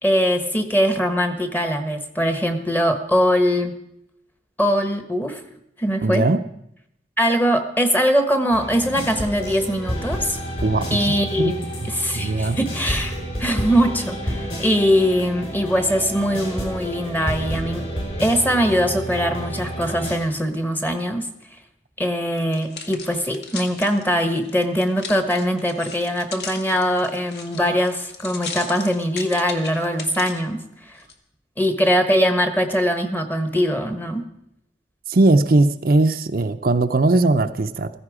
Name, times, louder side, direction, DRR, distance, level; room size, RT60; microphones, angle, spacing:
voice 1, 0.0-3.8 4.6-5.4 5.8-6.3 7.2-10.4 10.9-17.9 18.2-21.3 22.0-30.6 31.6-34.3, equal, 10° left, 7 dB, 1.1 m, -21 dB
voice 2, 6.0-6.4 10.6-11.6 12.1-12.6 35.1-37.9, right 2 dB, 50° right, 7 dB, 0.6 m, -19 dB
sound 1, 8.5-20.2, equal, 35° left, 4.9 m, -30 dB
sound 2, 22.4-30.4 31.0-31.1, left 5 dB, 60° left, 1.6 m, -37 dB
15.5 x 14.5 x 4.9 m, 0.78 s
head